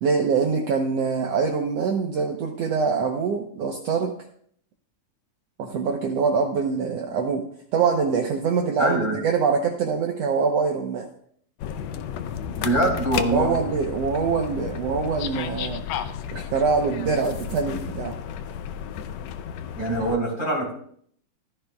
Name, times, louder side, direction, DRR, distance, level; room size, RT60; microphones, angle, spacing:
voice 1, 0.0-4.2 5.6-11.1 13.3-15.8 16.3-18.2, right 5 dB, 65° right, 2 dB, 1.7 m, -24 dB
voice 2, 8.8-9.2 12.5-13.5 19.8-20.7, right 1 dB, 25° left, -3 dB, 4.4 m, -23 dB
sound 1, 11.6-20.2, left 8 dB, 75° left, 1.7 m, -33 dB
14.5 x 13.5 x 2.3 m, 0.63 s
omnidirectional pair, 3.5 m